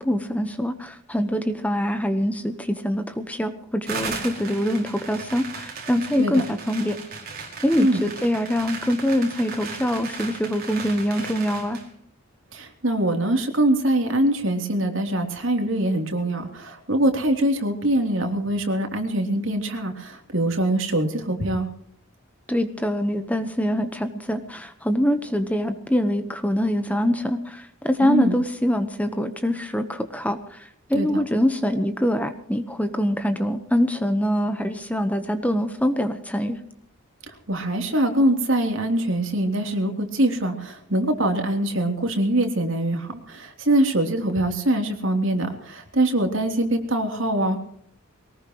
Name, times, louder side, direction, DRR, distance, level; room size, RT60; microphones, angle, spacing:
voice 1, 0.0-7.0 7.6-11.8 22.5-30.6 30.9-36.6, equal, 5° left, 8 dB, 1.1 m, -24 dB
sound 1, 3.9-11.9, right 4 dB, 45° right, 5.3 m, -36 dB
voice 2, 12.5-21.7 28.0-28.4 30.9-31.2 37.3-47.6, right 1 dB, 65° right, 4 dB, 3.4 m, -23 dB
22.5 x 19.5 x 3.1 m, 0.64 s
head